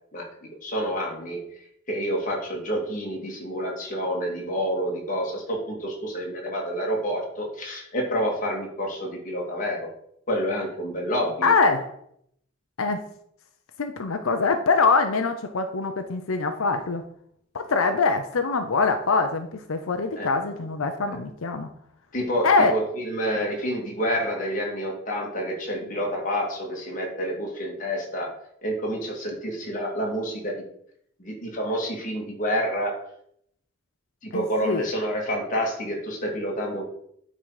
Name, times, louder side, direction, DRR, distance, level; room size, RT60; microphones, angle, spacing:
voice 1, 0.6-1.4 1.9-9.9 10.3-11.5 20.2-20.3 22.1-28.3 28.6-30.6 31.2-33.0 34.2-36.8, equal, 40° left, -1 dB, 2.2 m, -28 dB
voice 2, 11.4-11.9 12.8-13.0 13.8-17.0 17.5-21.7 22.4-22.7 34.3-34.9, left 4 dB, 90° left, 6 dB, 0.7 m, -23 dB
9.3 x 4.0 x 4.8 m, 0.69 s
head